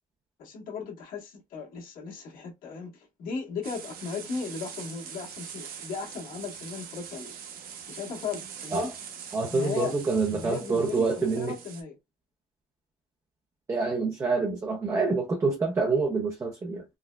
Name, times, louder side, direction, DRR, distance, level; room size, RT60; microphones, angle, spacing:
voice 1, 0.4-7.3 7.9-8.9 9.5-10.0 10.3-12.0, left 5 dB, 70° left, 1.5 m, -36 dB
sound 1, 3.6-11.8, right 7 dB, 90° right, 0.8 m, -43 dB
voice 2, 9.3-11.6 13.7-16.8, right 4 dB, 20° right, 0.5 m, -27 dB
4.5 x 2.1 x 2.2 m
cardioid pair, 170°, 15 cm